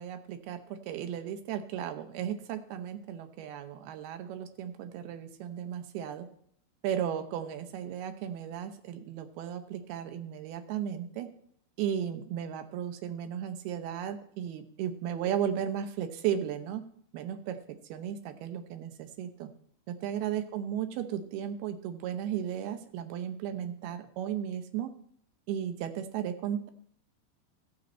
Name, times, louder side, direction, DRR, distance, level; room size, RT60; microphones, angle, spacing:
voice 1, 0.0-6.3 6.8-11.3 11.8-16.9 17.1-17.6 17.9-19.5 19.9-24.9 25.5-26.7, right 9 dB, 80° right, 9 dB, 2.7 m, -35 dB
15.5 x 6.3 x 4.3 m, 0.63 s
omnidirectional pair, 4.5 m